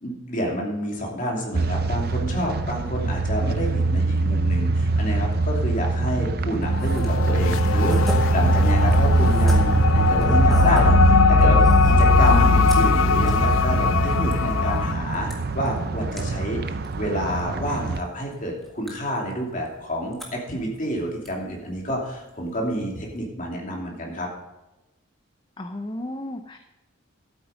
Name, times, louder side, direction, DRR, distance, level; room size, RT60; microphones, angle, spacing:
voice 1, 0.0-24.3, equal, 35° left, -1 dB, 2.7 m, -29 dB
sound 1, 1.5-18.0, right 3 dB, 45° right, 0.6 m, -23 dB
sound 2, 6.6-14.9, left 4 dB, 75° left, 0.4 m, -20 dB
sound 3, 6.6-23.2, equal, ahead, 1.7 m, -42 dB
voice 2, 12.2-12.6 25.6-26.6, left 1 dB, 20° left, 6 dB, 0.6 m, -33 dB
12.5 x 8.9 x 5.1 m, 1.0 s
head